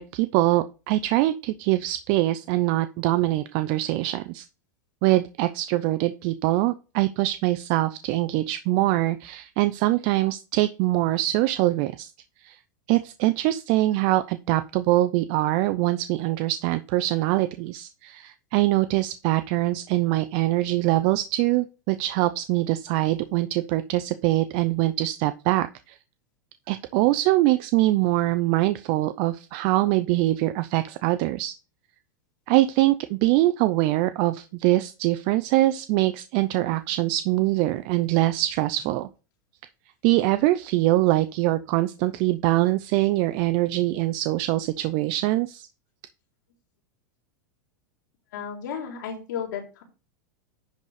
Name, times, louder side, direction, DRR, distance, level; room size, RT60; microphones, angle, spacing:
voice 1, 0.0-4.4 5.0-12.1 12.4-12.6 12.9-26.0 26.7-31.5 32.5-39.1 40.0-45.7, right 17 dB, 50° right, 12 dB, 0.6 m, -23 dB
voice 2, 48.3-49.8, left 7 dB, 75° left, 2 dB, 3.7 m, -33 dB
10.5 x 4.2 x 4.9 m, 0.33 s
supercardioid pair, 135°, 10 cm